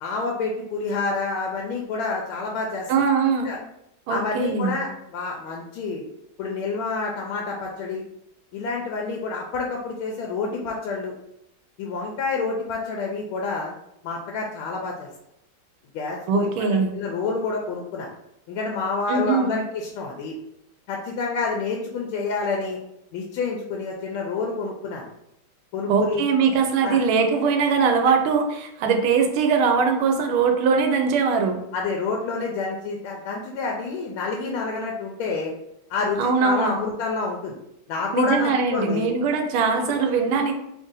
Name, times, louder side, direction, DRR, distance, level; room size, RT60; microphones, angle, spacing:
voice 1, 0.0-2.9 3.4-3.6 4.1-6.0 6.4-8.0 8.5-11.1 11.8-13.7 14.0-15.1 15.9-18.1 18.5-20.3 20.9-22.8 23.1-25.1 25.7-26.2 26.8-27.0 31.7-35.5 35.9-37.6 37.9-39.1, left 4 dB, 85° left, 0 dB, 1.4 m, -28 dB
voice 2, 2.9-3.5 4.1-4.7 16.3-16.9 19.1-19.6 25.9-31.6 36.2-36.8 38.1-40.5, right 5 dB, 85° right, 4 dB, 1.4 m, -21 dB
3.5 x 2.6 x 3.7 m, 0.81 s
omnidirectional pair, 2.3 m